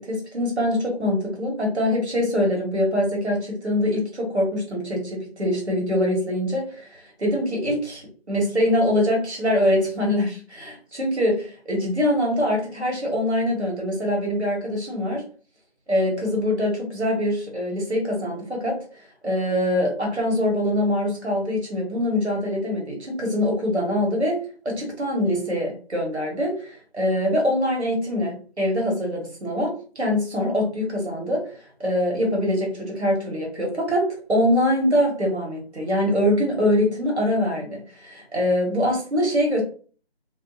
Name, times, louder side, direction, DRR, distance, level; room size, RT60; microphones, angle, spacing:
voice 1, 0.0-15.3 15.9-18.8 19.2-39.6, left 1 dB, 85° right, 0 dB, 1.4 m, -24 dB
2.3 x 2.2 x 2.7 m, 0.41 s
figure-of-eight pair, 170°, 33 cm